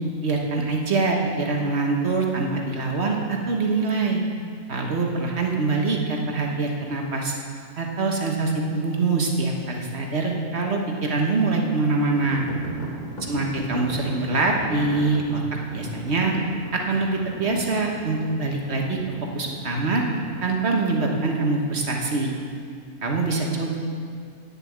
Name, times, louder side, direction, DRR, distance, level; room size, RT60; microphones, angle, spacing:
voice 1, 0.2-4.2 4.7-7.3 7.8-12.5 13.3-15.4 15.7-16.3 16.7-19.0 19.3-20.0 20.4-22.4 23.0-23.8, right 3 dB, 45° right, 1 dB, 1.4 m, -24 dB
sound 1, 12.2-20.6, equal, 30° left, 1.6 m, -37 dB
9.0 x 7.4 x 8.7 m, 2.2 s
omnidirectional pair, 1.6 m